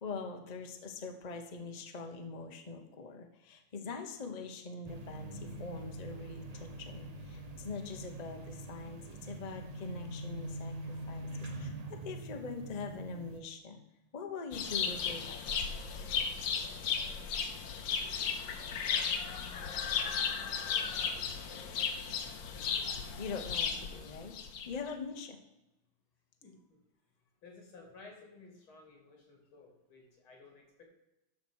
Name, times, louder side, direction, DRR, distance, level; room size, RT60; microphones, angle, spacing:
voice 1, 0.0-13.8 14.1-15.5 23.2-24.3 24.7-25.4, left 4 dB, 30° left, 4 dB, 0.7 m, -43 dB
sound 1, 4.8-13.4, right 1 dB, 75° right, 0.3 m, -44 dB
sound 2, 14.5-24.9, left 6 dB, 70° left, 1.6 m, -35 dB
voice 2, 26.4-26.8 27.4-30.9, left 3 dB, 90° left, 1 dB, 3.4 m, -56 dB
12.0 x 4.4 x 6.3 m, 0.94 s
omnidirectional pair, 2.2 m